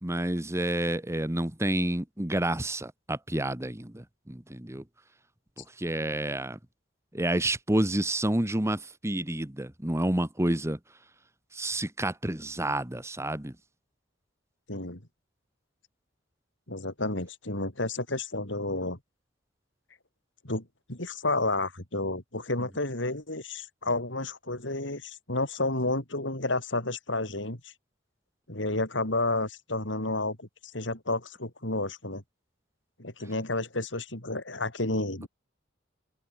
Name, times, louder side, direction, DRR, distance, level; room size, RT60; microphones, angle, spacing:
voice 1, 0.0-4.8 5.8-6.6 7.1-10.8 11.5-13.5, right 1 dB, 15° right, 1.5 m, -29 dB
voice 2, 14.7-15.0 16.7-19.0 20.4-27.7 28.5-30.5 30.7-32.2 33.0-35.3, left 2 dB, 70° left, 5.3 m, -31 dB
head